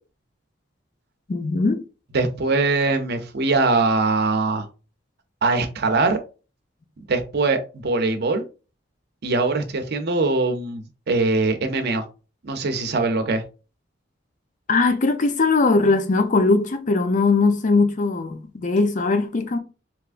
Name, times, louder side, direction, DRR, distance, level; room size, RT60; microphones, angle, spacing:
voice 1, 1.3-1.8 14.7-19.6, left 3 dB, 40° left, 0.5 m, -20 dB
voice 2, 2.1-4.7 5.4-6.2 7.0-8.4 9.2-12.0 12.4-13.4, right 3 dB, 60° right, 0.6 m, -22 dB
3.4 x 2.9 x 2.5 m
head